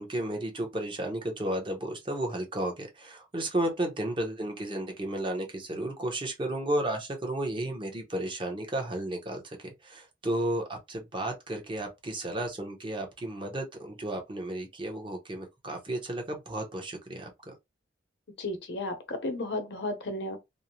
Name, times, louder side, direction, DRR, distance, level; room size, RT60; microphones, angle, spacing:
voice 1, 0.0-17.5, right 1 dB, 25° right, 0.7 m, -33 dB
voice 2, 18.4-20.4, left 2 dB, 65° left, 0.7 m, -33 dB
2.5 x 2.0 x 2.9 m
head